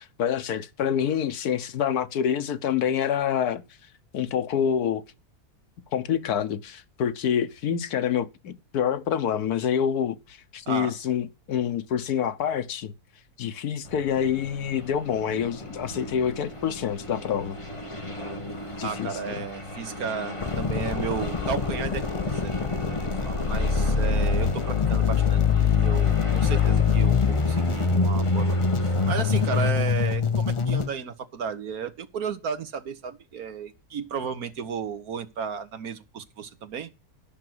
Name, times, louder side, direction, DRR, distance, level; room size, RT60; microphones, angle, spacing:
voice 1, 0.0-3.6 4.1-5.0 5.9-12.9 13.4-17.6 18.8-19.4, left 8 dB, 90° left, 1.5 m, -27 dB
sound 1, 13.8-29.7, left 1 dB, 20° left, 2.3 m, -37 dB
voice 2, 18.8-36.9, right 6 dB, 75° right, 1.7 m, -34 dB
sound 2, 20.4-30.9, left 6 dB, 35° left, 0.4 m, -24 dB
12.5 x 6.0 x 7.8 m
omnidirectional pair, 1.6 m